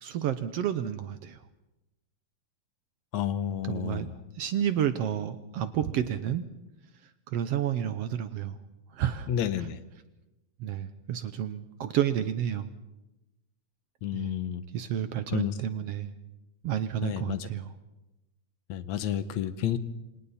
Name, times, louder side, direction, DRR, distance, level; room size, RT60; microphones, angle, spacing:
voice 1, 0.0-1.4 3.6-6.4 7.3-8.5 8.9-9.3 9.6-9.7 10.6-12.7 14.1-14.3 14.7-16.1 16.6-17.7, right 10 dB, 70° right, 11 dB, 1.7 m, -30 dB
voice 2, 3.1-4.1 9.3-9.8 14.0-14.6 15.3-15.5 17.0-17.4 18.7-19.8, left 10 dB, 70° left, 12 dB, 2.2 m, -30 dB
28.0 x 26.0 x 4.2 m, 0.99 s
omnidirectional pair, 3.4 m